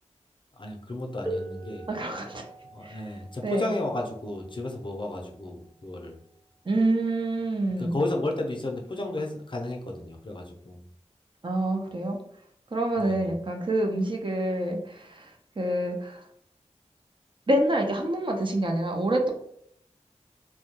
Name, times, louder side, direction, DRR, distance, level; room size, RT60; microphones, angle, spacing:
voice 1, 0.6-1.9 2.7-6.2 7.8-10.8 13.0-13.3, left 2 dB, 45° left, 1 dB, 0.5 m, -33 dB
sound 1, 1.3-6.7 7.7-7.8 8.7-8.9, right 2 dB, 15° right, 0.8 m, -42 dB
voice 2, 1.9-2.4 2.8-3.1 3.4-3.7 6.7-8.0 11.4-12.2 12.7-16.2 17.5-19.3, right 1 dB, 45° right, 2 dB, 0.5 m, -27 dB
2.2 x 2.1 x 2.8 m, 0.69 s
wide cardioid pair, 45°, 12 cm